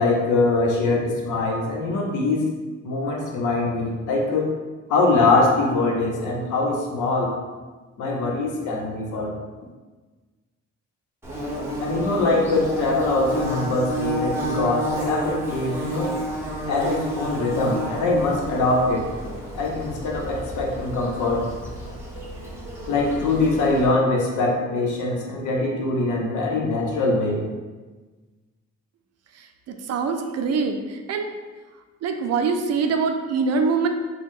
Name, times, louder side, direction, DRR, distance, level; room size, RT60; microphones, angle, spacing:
voice 1, 0.0-2.5 2.8-4.5 4.9-7.3 8.0-9.3 11.8-16.2 16.6-19.1 19.5-21.5 22.9-27.5, left 2 dB, 80° left, 0 dB, 0.8 m, -23 dB
Bird / Buzz, 11.2-23.9, right 1 dB, 10° right, 1.0 m, -30 dB
voice 2, 29.4-31.3 32.0-33.9, right 5 dB, 55° right, 5 dB, 0.5 m, -24 dB
3.6 x 2.2 x 3.7 m, 1.3 s
cardioid pair, 90°, 30 cm